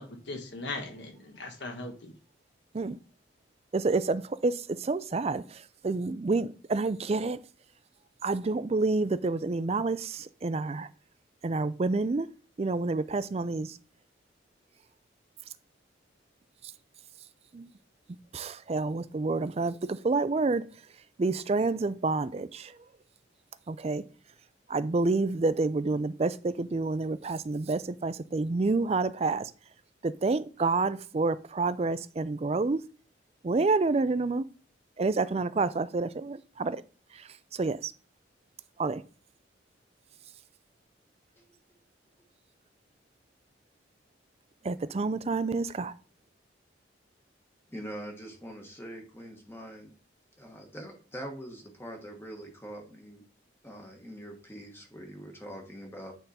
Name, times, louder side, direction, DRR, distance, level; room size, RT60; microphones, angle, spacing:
voice 1, 0.0-2.1, left 2 dB, 65° left, 1.4 m, -39 dB
voice 2, 3.7-7.4 8.2-10.9 11.4-12.3 12.6-13.8 17.5-17.7 18.3-20.7 21.2-22.8 23.7-24.0 24.7-29.5 30.0-32.8 33.4-34.4 35.0-36.8 37.1-37.9 38.8-39.0 44.6-45.9, right 3 dB, 35° right, 0.4 m, -28 dB
voice 3, 47.7-49.9 50.4-53.2 53.6-56.1, equal, 10° left, 1.2 m, -43 dB
9.0 x 3.7 x 4.2 m
head